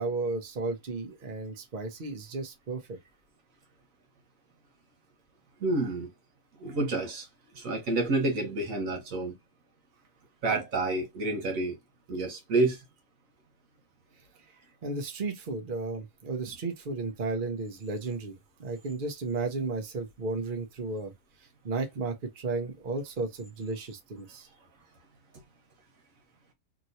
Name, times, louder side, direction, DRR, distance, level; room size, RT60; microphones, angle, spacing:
voice 1, 0.0-3.0 14.8-18.3 18.6-21.1 21.6-24.5, right 3 dB, 45° right, 1.0 m, -33 dB
voice 2, 5.6-6.1 6.6-7.3 7.5-9.3 10.4-11.8 12.1-12.8, right 2 dB, 85° right, 1.5 m, -29 dB
2.9 x 2.9 x 2.6 m
omnidirectional pair, 1.4 m